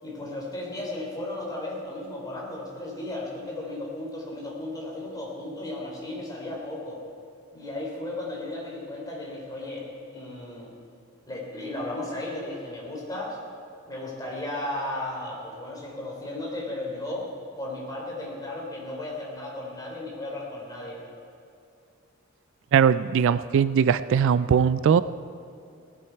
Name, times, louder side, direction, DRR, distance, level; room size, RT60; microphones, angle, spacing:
voice 1, 0.0-7.0 7.5-9.9 10.1-10.7 11.3-13.4 13.9-17.3 17.6-21.0, left 1 dB, 20° left, -3 dB, 3.4 m, -35 dB
voice 2, 22.7-25.0, right 7 dB, 65° right, 15 dB, 0.3 m, -20 dB
18.0 x 12.0 x 4.6 m, 2.5 s
head